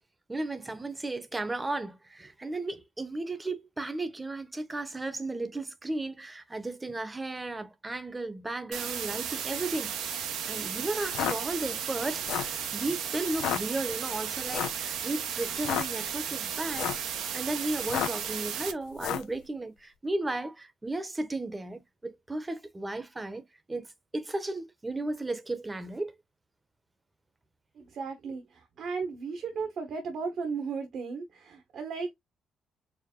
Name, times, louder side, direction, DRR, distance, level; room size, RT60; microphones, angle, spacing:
voice 1, 0.3-10.2 10.5-16.9 17.3-23.9 24.1-26.1, right 2 dB, 20° right, 0.9 m, -35 dB
sound 1, 8.7-18.7, right 8 dB, 85° right, 0.9 m, -34 dB
sound 2, 11.0-11.4 12.1-12.6 13.3-13.6 14.5-14.8 15.5-15.9 16.6-17.1 17.8-18.3 19.0-19.3, left 11 dB, 90° left, 0.5 m, -31 dB
voice 2, 27.8-32.1, right 5 dB, 65° right, 1.2 m, -35 dB
4.8 x 2.1 x 3.7 m
cardioid pair, 90°, 0 cm